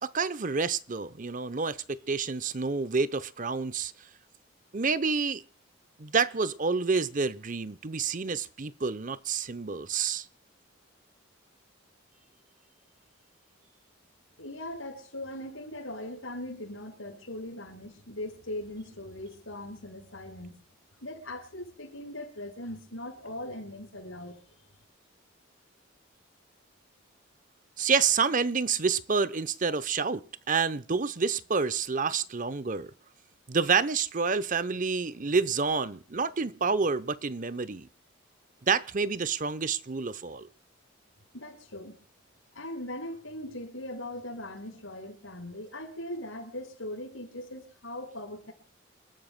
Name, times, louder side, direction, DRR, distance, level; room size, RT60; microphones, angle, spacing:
voice 1, 0.0-3.9 4.7-5.4 6.0-10.3 27.8-32.9 33.5-37.9 38.7-40.5, right 5 dB, 40° right, 0.7 m, -28 dB
voice 2, 14.4-20.6 21.0-24.4 41.3-42.0 42.5-48.5, left 1 dB, 80° left, 5.7 m, -40 dB
29.0 x 13.0 x 2.2 m
head